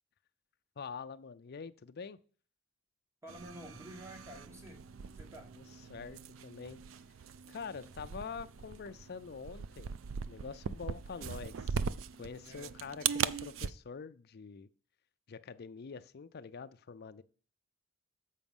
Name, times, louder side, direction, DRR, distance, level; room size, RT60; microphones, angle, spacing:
voice 1, 0.8-2.2 5.9-6.8 7.5-9.9 10.3-11.8 12.2-14.7 15.3-17.2, left 5 dB, 50° left, 0.5 m, -45 dB
voice 2, 3.2-5.5 8.0-8.1 12.4-12.7, equal, 15° right, 1.3 m, -50 dB
sound 1, 3.3-13.7, right 7 dB, 75° right, 0.4 m, -40 dB
7.4 x 4.9 x 5.3 m
head